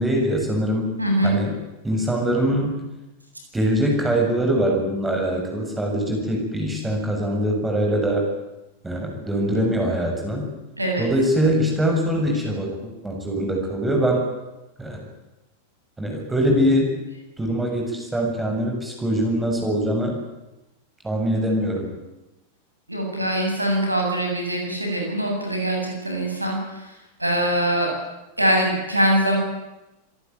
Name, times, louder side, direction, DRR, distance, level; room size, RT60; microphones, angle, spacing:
voice 1, 0.0-0.9 1.2-1.5 1.8-2.8 3.5-8.3 8.8-10.5 11.0-14.2 14.8-15.0 16.0-16.9 17.4-20.2 21.0-21.9, equal, 10° right, 0 dB, 7.4 m, -23 dB
voice 2, 1.0-1.4 10.8-11.1 22.9-26.8 27.2-27.9 28.4-29.4, right 1 dB, 85° right, 1 dB, 7.9 m, -22 dB
26.5 x 19.0 x 9.5 m, 1.0 s
figure-of-eight pair, 90°, 0 cm